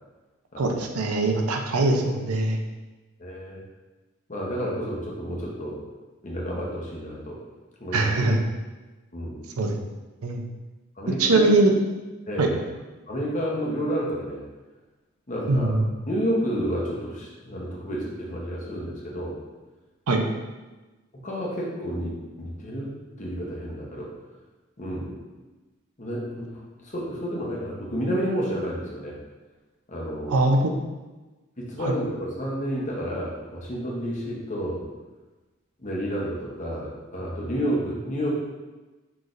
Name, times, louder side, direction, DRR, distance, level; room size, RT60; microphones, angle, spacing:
voice 1, 0.6-2.6 7.9-8.4 9.6-9.8 10.2-10.4 11.2-11.7 12.4-12.5 15.5-15.9 20.1-20.2 30.3-30.7 31.8-31.9, right 2 dB, 85° right, 3 dB, 0.6 m, -22 dB
voice 2, 3.2-3.6 4.3-5.8 6.2-7.4 7.8-8.1 9.1-9.4 11.0-11.5 12.3-12.6 13.1-14.4 15.3-15.8 16.1-19.3 21.1-24.1 24.8-25.1 26.0-29.2 29.9-30.3 31.6-34.9 35.8-38.3, equal, 35° left, -3 dB, 0.9 m, -30 dB
6.0 x 3.2 x 2.6 m, 1.2 s
head